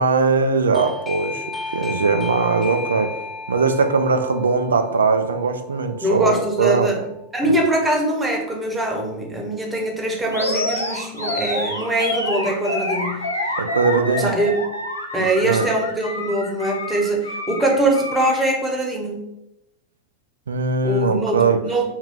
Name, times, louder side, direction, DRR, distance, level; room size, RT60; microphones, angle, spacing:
voice 1, 0.0-3.2 3.5-6.9 7.5-7.6 13.6-14.3 15.2-15.7 20.5-21.6, right 4 dB, 70° right, 7 dB, 0.4 m, -20 dB
Doorbell, 0.7-7.2, left 4 dB, 10° left, 0.3 m, -34 dB
voice 2, 6.0-7.0 7.3-13.2 14.2-14.5 15.1-19.2 20.8-21.4 21.6-21.9, right 1 dB, 10° right, 1 dB, 0.9 m, -22 dB
Animal, 10.3-18.5, left 1 dB, 85° left, 0.6 m, -27 dB
4.4 x 2.3 x 3.4 m, 0.88 s
figure-of-eight pair, 90°, 0 cm